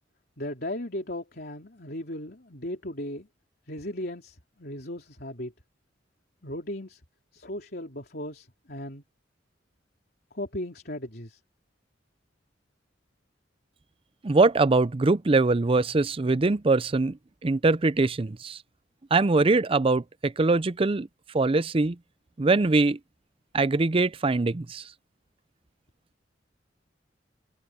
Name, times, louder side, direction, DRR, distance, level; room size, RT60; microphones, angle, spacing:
voice 1, 0.4-3.3 3.7-5.5 6.4-7.0 7.3-9.0 10.3-11.4, left 1 dB, 55° left, 3.7 m, -36 dB
voice 2, 14.2-17.2 17.4-18.6 19.1-21.1 21.3-22.0 22.4-23.0 23.5-24.9, right 3 dB, 30° right, 0.5 m, -22 dB
head